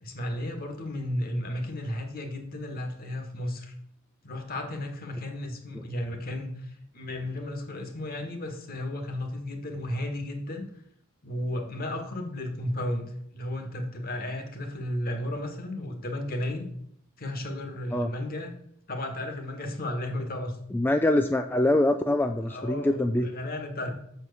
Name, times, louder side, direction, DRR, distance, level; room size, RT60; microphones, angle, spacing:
voice 1, 0.0-3.7 4.2-10.7 11.2-16.7 17.2-18.5 18.9-20.6 22.5-23.9, left 1 dB, 45° left, 4 dB, 1.5 m, -34 dB
voice 2, 20.7-23.3, left 1 dB, 10° left, 7 dB, 0.3 m, -24 dB
6.9 x 4.6 x 6.8 m, 0.69 s
head